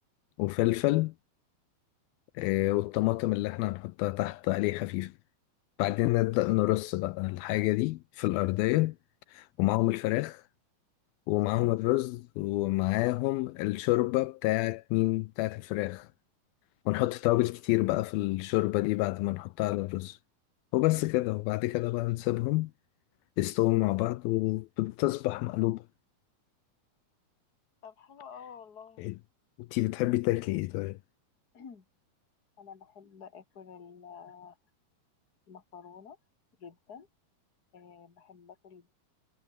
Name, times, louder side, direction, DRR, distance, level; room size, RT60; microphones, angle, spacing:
voice 1, 0.4-1.1 2.4-5.1 5.8-9.0 9.3-10.4 11.3-16.1 16.9-20.2 20.7-22.7 23.4-25.8 29.0-29.1 29.6-31.0, left 19 dB, 80° left, 2.4 m, -28 dB
voice 2, 27.8-29.1 31.5-31.8 32.6-34.6 35.5-36.2 36.6-37.1 37.7-38.9, left 7 dB, 30° left, 2.7 m, -49 dB
omnidirectional pair, 4.4 m